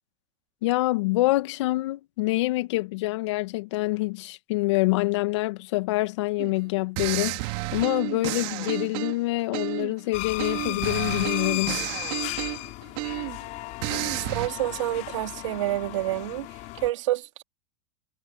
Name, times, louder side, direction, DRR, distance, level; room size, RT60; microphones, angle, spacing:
voice 1, 0.6-11.8, left 20 dB, 65° left, 2.1 m, -26 dB
sound 1, 6.4-6.6 7.0-10.0 10.4-13.4 13.8-14.5, right 25 dB, 55° right, 2.6 m, -31 dB
sound 2, 10.1-16.9, left 21 dB, 50° left, 4.7 m, -34 dB
voice 2, 14.1-16.5 16.8-17.4, right 15 dB, 75° right, 3.7 m, -28 dB
hypercardioid pair, 110°, 16 cm